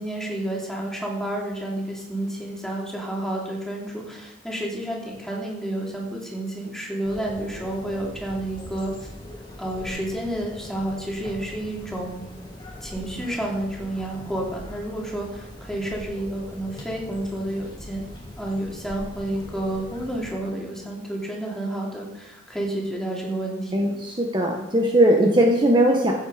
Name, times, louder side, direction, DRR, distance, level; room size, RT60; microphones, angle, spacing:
voice 1, 0.0-9.1 9.6-12.2 12.8-18.1 18.4-24.0, right 1 dB, 5° left, -2 dB, 3.0 m, -30 dB
sound 1, 7.0-20.3, left 1 dB, 25° left, 2.7 m, -41 dB
voice 2, 23.7-26.1, right 1 dB, 25° right, 0 dB, 1.4 m, -19 dB
16.0 x 8.0 x 5.1 m, 0.88 s
head